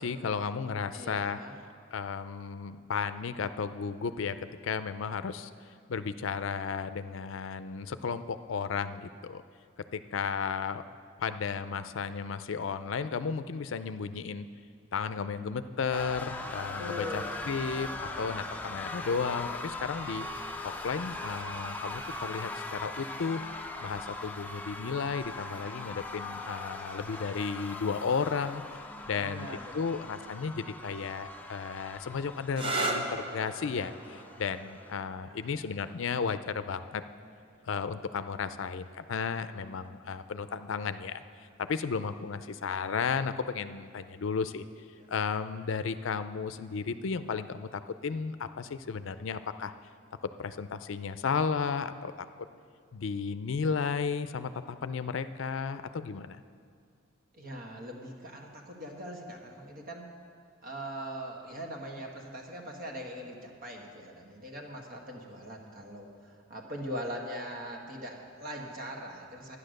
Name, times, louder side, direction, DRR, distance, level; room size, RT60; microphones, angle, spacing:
voice 1, 0.0-1.4 1.9-4.4 4.6-5.5 5.9-9.4 9.9-10.8 11.2-14.5 14.9-20.3 20.6-23.4 23.8-28.6 29.1-37.0 37.6-41.2 41.6-44.6 45.1-49.7 50.4-52.1 52.9-56.4, left 5 dB, 75° left, 11 dB, 0.5 m, -34 dB
voice 2, 0.9-1.6 16.8-17.4 29.1-30.3 35.3-35.6 57.3-60.1 60.6-69.6, equal, 45° right, 1 dB, 1.6 m, -41 dB
sound 1, 15.9-35.0, left 2 dB, 10° left, 0.6 m, -40 dB
sound 2, 32.5-39.9 40.9-41.4 45.0-45.3, right 2 dB, 25° right, 0.9 m, -39 dB
12.0 x 9.7 x 6.5 m, 2.2 s
head